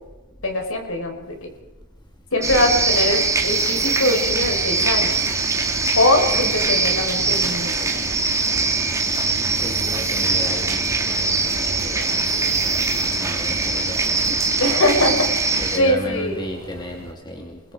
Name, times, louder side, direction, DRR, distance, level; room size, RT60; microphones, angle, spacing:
voice 1, 0.4-1.5 2.3-5.2 6.0-8.0 14.6-16.4, left 1 dB, 65° left, 3 dB, 5.4 m, -22 dB
sound 1, 2.4-15.8, right 3 dB, 15° right, 2.0 m, -22 dB
sound 2, 2.5-17.1, right 1 dB, 60° right, 1.6 m, -39 dB
voice 2, 6.4-6.9 7.1-7.5 9.6-11.3 11.7-12.6 12.9-14.4 15.5-17.6, left 1 dB, 20° left, 2 dB, 2.8 m, -35 dB
28.5 x 22.0 x 5.1 m, 1.2 s
head